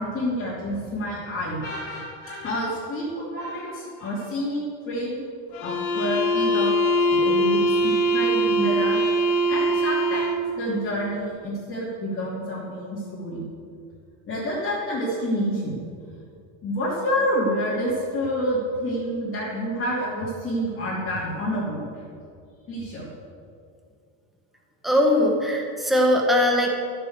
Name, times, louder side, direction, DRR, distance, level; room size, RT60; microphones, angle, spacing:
voice 1, 0.0-5.2 5.6-6.8 7.1-9.0 9.5-13.4 14.3-15.8 16.6-22.0 22.7-23.1, equal, 30° left, -8 dB, 3.0 m, -28 dB
sound 1, 5.5-10.5, equal, 55° left, 1.7 m, -22 dB
voice 2, 24.8-26.7, left 1 dB, ahead, 0 dB, 1.4 m, -20 dB
14.0 x 7.7 x 8.1 m, 2.4 s
cardioid pair, 165°, 43 cm